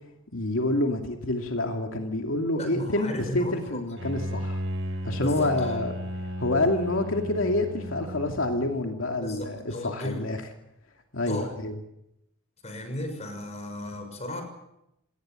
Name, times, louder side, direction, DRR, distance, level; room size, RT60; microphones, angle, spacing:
voice 1, 0.3-4.6 5.0-5.9 6.4-10.4 11.1-11.8, left 2 dB, 80° left, 3 dB, 2.5 m, -27 dB
voice 2, 2.6-3.8 5.2-5.8 9.2-10.2 11.3-11.5 12.6-14.4, left 1 dB, 30° left, 7 dB, 6.2 m, -35 dB
Bowed string instrument, 4.0-8.9, equal, 70° right, 4.5 m, -34 dB
27.5 x 19.5 x 7.7 m, 0.83 s
head